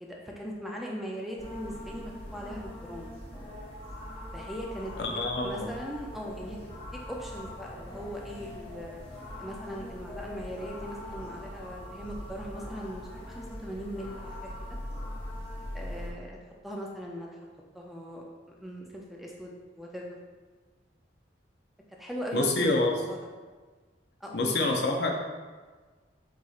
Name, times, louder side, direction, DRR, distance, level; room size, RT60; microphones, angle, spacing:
voice 1, 0.0-3.1 4.3-4.9 5.4-6.7 7.1-9.0 9.4-13.0 13.3-14.5 15.7-16.4 16.6-17.4 17.7-20.2 22.0-23.3 24.2-24.5, equal, ahead, -2 dB, 0.3 m, -39 dB
sound 1, 1.4-16.1, left 1 dB, 30° left, 0.9 m, -42 dB
voice 2, 5.0-5.7 22.3-22.9 24.3-25.1, left 2 dB, 60° left, 1 dB, 0.6 m, -26 dB
4.6 x 4.1 x 2.4 m, 1.4 s
head